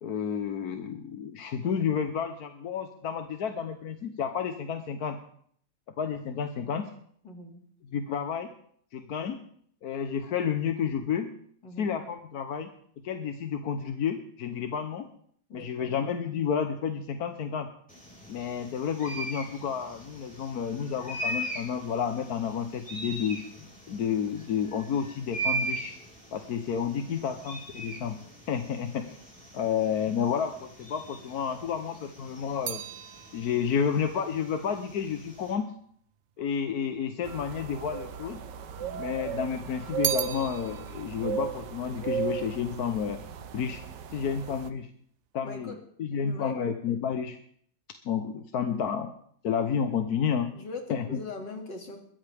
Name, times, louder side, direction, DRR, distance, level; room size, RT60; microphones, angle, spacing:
voice 1, 0.0-5.2 6.0-6.9 7.9-8.5 8.9-9.4 9.8-11.3 11.8-12.7 13.0-15.1 15.5-17.7 18.3-23.4 23.9-26.0 26.3-28.2 28.5-29.2 29.5-32.8 33.3-35.7 36.4-38.4 39.0-43.2 43.5-43.8 44.1-44.9 45.3-45.7 46.0-47.4 48.0-49.1 49.4-50.5 50.9-51.2, left 7 dB, 65° left, 7 dB, 1.4 m, -30 dB
voice 2, 7.2-7.6 11.6-12.0 15.5-15.9 38.8-39.2 44.2-44.6 45.4-45.8 46.1-46.5 50.5-52.0, left 3 dB, 90° left, 2 dB, 3.1 m, -41 dB
sound 1, 17.9-35.5, right 2 dB, 5° left, 5.5 m, -40 dB
sound 2, 31.7-36.1 36.9-37.7 38.0-39.1 39.4-43.0 43.3-43.8, right 11 dB, 55° right, 0.8 m, -38 dB
sound 3, 37.2-44.7, right 8 dB, 85° right, 1.6 m, -36 dB
22.0 x 15.0 x 3.5 m, 0.64 s
omnidirectional pair, 1.9 m